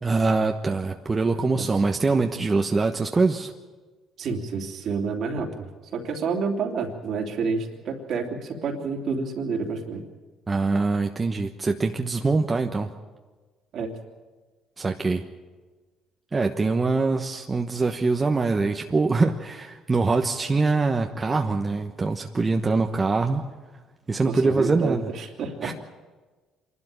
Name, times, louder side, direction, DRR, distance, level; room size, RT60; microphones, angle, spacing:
voice 1, 0.0-3.5 10.5-12.9 14.8-15.2 16.3-23.5 24.1-25.1 25.6-25.7, right 3 dB, 25° right, 4 dB, 1.1 m, -23 dB
voice 2, 4.2-10.0 13.7-13.9 24.3-25.7, right 4 dB, 60° right, 3 dB, 2.9 m, -29 dB
26.0 x 12.5 x 8.9 m, 1.3 s
supercardioid pair, 80°, 0 cm